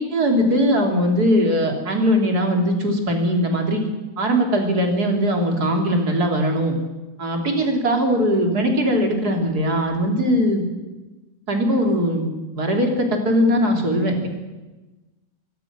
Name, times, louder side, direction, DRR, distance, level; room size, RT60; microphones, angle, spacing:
voice 1, 0.0-3.8 4.2-6.8 7.2-10.6 11.5-12.3 12.6-14.3, equal, 60° right, 2 dB, 3.7 m, -20 dB
25.5 x 16.5 x 6.2 m, 1.1 s
omnidirectional pair, 1.9 m